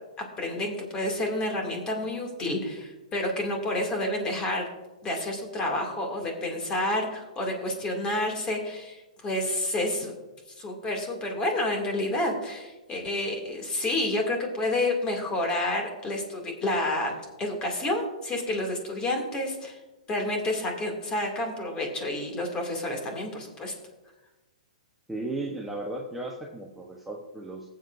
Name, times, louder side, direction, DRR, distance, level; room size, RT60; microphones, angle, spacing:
voice 1, 0.4-4.7 5.0-10.1 10.6-17.1 17.4-19.8 20.1-23.7, left 1 dB, 20° left, 2 dB, 2.4 m, -29 dB
voice 2, 25.1-27.7, right 2 dB, 5° right, -2 dB, 1.0 m, -35 dB
19.0 x 7.8 x 2.6 m, 1.1 s
hypercardioid pair, 140°, 4 cm